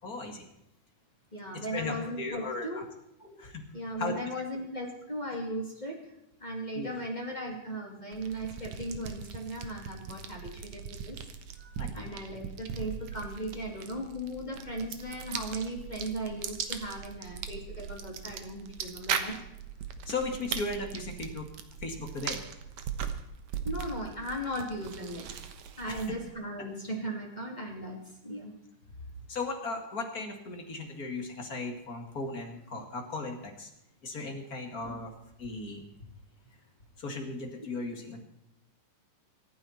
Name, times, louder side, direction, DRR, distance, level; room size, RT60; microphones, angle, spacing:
voice 1, 0.0-0.4 1.7-2.8 3.4-3.6 4.0-4.1 6.7-6.9 11.8-11.9 20.1-21.5 21.8-22.4 25.8-26.0 29.3-33.7 34.0-35.1 35.4-35.8 37.0-38.2, left 3 dB, 30° left, 3 dB, 2.0 m, -36 dB
voice 2, 1.3-2.8 3.2-3.4 3.7-6.1 6.4-11.2 11.6-19.5 23.6-25.3 25.8-28.6, right 1 dB, 15° left, 0 dB, 2.3 m, -37 dB
sound 1, 8.1-26.3, right 7 dB, 60° right, 2.0 m, -39 dB
26.0 x 9.7 x 4.4 m, 0.82 s
omnidirectional pair, 4.3 m